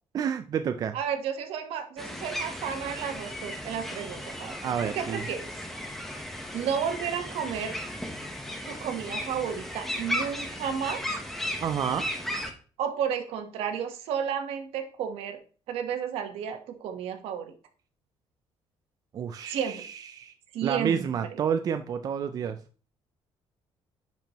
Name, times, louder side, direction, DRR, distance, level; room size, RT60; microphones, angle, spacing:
voice 1, 0.1-1.0 4.6-5.3 11.6-12.1 19.1-20.3 20.6-22.6, right 8 dB, 40° right, 8 dB, 0.4 m, -29 dB
voice 2, 0.9-4.6 4.9-5.5 6.5-7.8 8.7-11.0 12.8-15.4 15.7-17.5 19.4-19.8 20.5-21.1, right 8 dB, 80° right, 6 dB, 1.2 m, -32 dB
sound 1, 2.0-12.5, equal, 5° left, 1.0 m, -35 dB
10.5 x 4.5 x 3.0 m, 0.39 s
cardioid pair, 150°, 10 cm